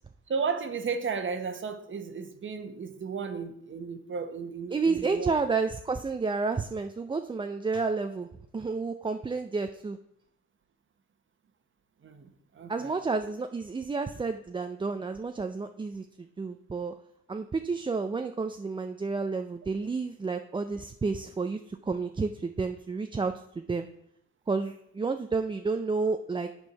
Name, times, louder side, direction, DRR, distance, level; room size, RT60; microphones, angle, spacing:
voice 1, 0.3-5.3 12.0-12.9, right 5 dB, 40° right, 1.1 m, -34 dB
voice 2, 4.7-8.3 8.5-10.0 12.7-16.1 16.4-16.9 17.3-23.9 24.5-26.5, right 4 dB, 15° right, 0.4 m, -30 dB
9.6 x 4.5 x 5.6 m
cardioid pair, 90°, 30 cm